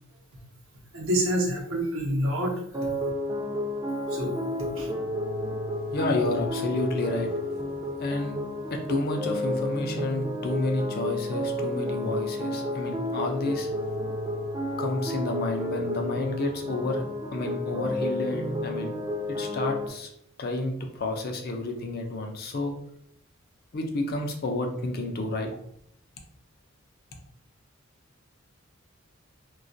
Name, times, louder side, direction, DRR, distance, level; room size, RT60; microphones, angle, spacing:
voice 1, 0.9-2.6 4.1-4.4 4.7-4.9, right 1 dB, 70° right, -1 dB, 0.7 m, -27 dB
sound 1, 2.7-19.9, left 1 dB, 20° right, 0.5 m, -31 dB
voice 2, 5.9-7.3 8.0-8.4 8.7-13.7 14.8-17.0 17.3-18.9 19.4-20.1 20.4-22.7 23.7-25.5, left 2 dB, 50° left, 3 dB, 0.4 m, -30 dB
2.2 x 2.2 x 2.6 m, 0.69 s
head